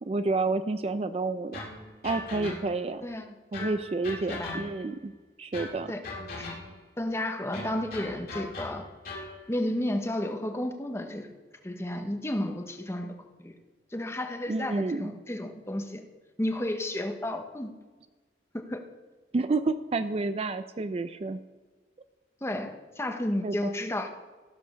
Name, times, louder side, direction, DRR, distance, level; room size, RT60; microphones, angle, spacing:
voice 1, 0.0-1.6 2.0-3.0 3.5-5.1 5.4-5.9 14.5-15.1 19.3-21.4 23.4-23.7, right 3 dB, 35° right, 11 dB, 0.4 m, -29 dB
sound 1, 1.5-2.9 3.5-5.0 5.5-6.9 7.5-9.4, left 2 dB, 55° left, 2.7 m, -39 dB
voice 2, 7.0-8.9 9.5-11.3 11.6-13.5 13.9-16.0 16.4-17.7 18.6-18.8 22.4-24.1, left 1 dB, 15° left, 5 dB, 0.9 m, -32 dB
15.5 x 5.2 x 6.4 m, 1.3 s
head